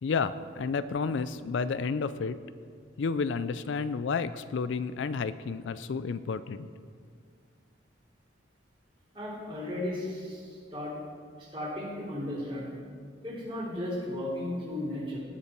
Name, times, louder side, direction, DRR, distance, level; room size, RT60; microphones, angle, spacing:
voice 1, 0.0-2.4 3.0-6.7, left 5 dB, 70° left, 14 dB, 0.4 m, -31 dB
voice 2, 9.1-11.0 11.4-12.7 13.2-15.2, left 1 dB, 25° right, -6 dB, 3.3 m, -35 dB
19.0 x 6.9 x 4.5 m, 2.2 s
head